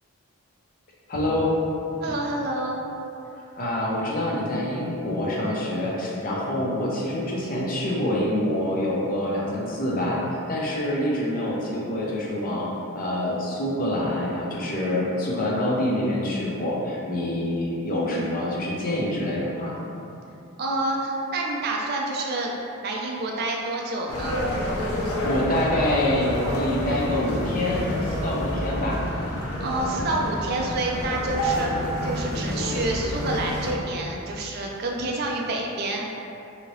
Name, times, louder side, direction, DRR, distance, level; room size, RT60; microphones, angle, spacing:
voice 1, 1.1-1.6 3.6-10.2 10.5-19.8 24.9-29.1, left 1 dB, 40° left, -4 dB, 0.5 m, -26 dB
voice 2, 2.0-2.9 17.9-18.3 20.6-22.5 22.8-24.4 29.6-31.7 32.0-36.1, right 2 dB, 45° right, -1 dB, 0.4 m, -28 dB
sound 1, 24.1-33.7, equal, 85° left, 0.6 m, -28 dB
2.7 x 2.7 x 3.0 m, 2.7 s
head